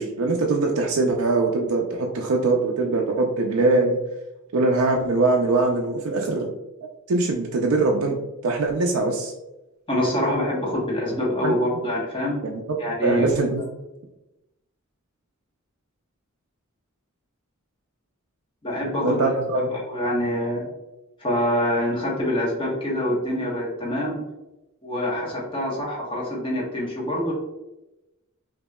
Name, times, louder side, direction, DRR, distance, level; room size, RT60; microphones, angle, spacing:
voice 1, 0.0-4.0 4.5-6.5 7.1-8.2 8.4-9.3 11.4-11.5 12.4-12.5 13.0-13.6 19.0-19.7, right 3 dB, 70° right, 1 dB, 0.5 m, -22 dB
voice 2, 9.9-12.4 12.8-13.3 18.6-19.3 19.5-20.7 21.2-24.2 24.8-27.3, left 1 dB, 25° left, -4 dB, 1.1 m, -25 dB
5.2 x 2.7 x 2.2 m, 0.95 s
head